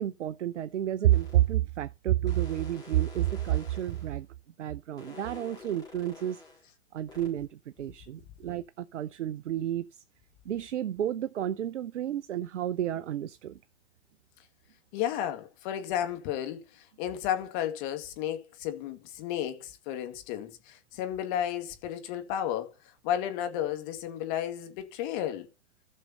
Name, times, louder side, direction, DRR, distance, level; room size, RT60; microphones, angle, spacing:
voice 1, 0.0-4.3 4.6-6.4 6.9-9.8 10.5-13.6, right 12 dB, 75° right, 0.6 m, -30 dB
sound 1, 1.1-1.5 2.3-4.2 5.0-6.6 7.1-7.3, left 4 dB, 10° left, 4.4 m, -49 dB
voice 2, 14.9-22.7 23.0-25.5, left 10 dB, 40° left, 2.0 m, -33 dB
15.0 x 6.4 x 2.9 m
hypercardioid pair, 115°, 36 cm